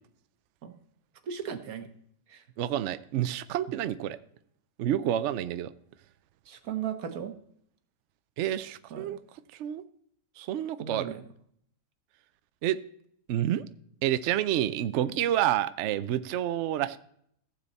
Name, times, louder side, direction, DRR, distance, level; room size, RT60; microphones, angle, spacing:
voice 1, 1.2-1.9 2.3-2.4 6.5-7.3 8.9-9.2 10.8-11.2 15.0-15.2, right 8 dB, 60° right, 8 dB, 1.4 m, -36 dB
voice 2, 2.6-4.2 4.8-5.7 8.4-9.2 9.6-9.8 10.4-11.1 12.6-12.8 13.3-13.6 14.0-17.0, right 11 dB, 80° right, 13 dB, 0.6 m, -28 dB
15.0 x 7.7 x 4.1 m, 0.67 s
omnidirectional pair, 1.8 m